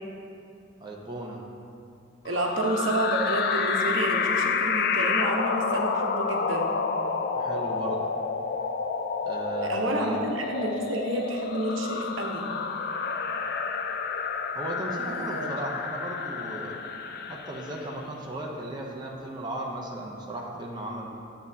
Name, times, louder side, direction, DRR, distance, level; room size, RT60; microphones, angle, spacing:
voice 1, 0.8-1.4 7.3-8.0 9.2-10.2 14.5-16.8 17.3-21.1, right 1 dB, 20° right, -2 dB, 0.7 m, -35 dB
voice 2, 2.2-6.7 9.6-12.5 14.9-15.5, right 1 dB, 75° right, 1 dB, 0.9 m, -30 dB
sound 1, 2.3-17.9, left 5 dB, 50° left, 0.3 m, -29 dB
10.0 x 7.3 x 2.7 m, 2.7 s
head